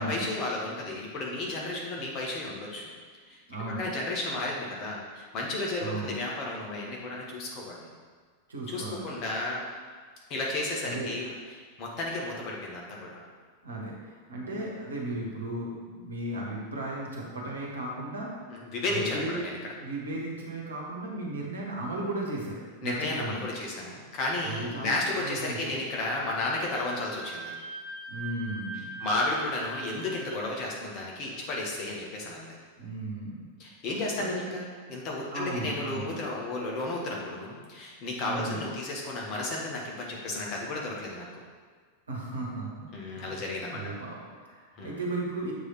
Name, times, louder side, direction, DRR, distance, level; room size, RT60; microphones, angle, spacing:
voice 1, 0.0-2.8 3.3-3.4 3.8-7.9 8.7-9.6 10.3-11.3 11.8-13.2 18.5-19.6 22.8-27.5 29.0-32.5 33.6-41.4 42.9-43.8 44.8-45.0, left 2 dB, 40° left, -2 dB, 1.3 m, -33 dB
voice 2, 3.5-3.9 5.8-6.1 8.5-9.1 10.8-11.1 13.6-18.3 18.9-19.4 19.8-23.4 24.4-25.8 28.1-29.1 32.8-33.5 34.1-34.5 35.3-36.2 38.2-38.7 42.1-45.5, right 2 dB, 70° right, -2 dB, 1.2 m, -35 dB
Wind instrument woodwind instrument, 26.5-30.4, right 3 dB, 35° right, 1.1 m, -41 dB
7.1 x 3.4 x 4.3 m, 1.5 s
figure-of-eight pair, 90°, 0 cm